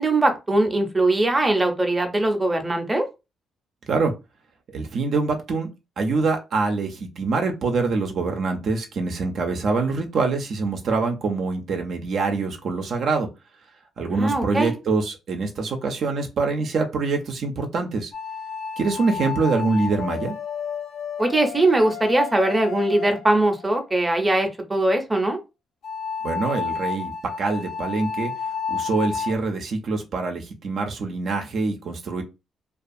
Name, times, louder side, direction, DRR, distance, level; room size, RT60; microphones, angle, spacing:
voice 1, 0.0-3.0 14.1-14.7 21.2-25.4, right 2 dB, 15° right, 0.7 m, -21 dB
voice 2, 4.7-5.7 6.0-13.3 14.0-18.1 18.8-20.3 26.2-27.1 27.4-28.3 28.7-32.2, right 3 dB, 60° right, 0.5 m, -25 dB
sound 1, 18.1-24.0 25.8-29.4, left 6 dB, 75° left, 1.1 m, -31 dB
2.3 x 2.3 x 2.6 m
cardioid pair, 90°, 0 cm